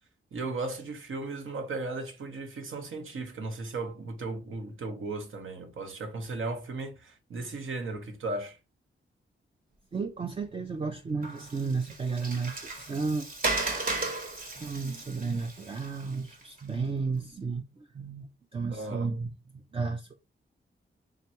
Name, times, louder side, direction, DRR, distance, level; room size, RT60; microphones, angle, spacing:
voice 1, 0.3-8.6 18.7-19.1, right 3 dB, 70° right, 1.0 m, -36 dB
voice 2, 9.9-13.3 14.6-18.2 18.5-19.3 19.7-20.2, right 4 dB, 25° right, 0.4 m, -33 dB
Water, 11.2-16.6, right 2 dB, 40° right, 1.1 m, -35 dB
3.7 x 3.2 x 2.8 m
wide cardioid pair, 130°, 21 cm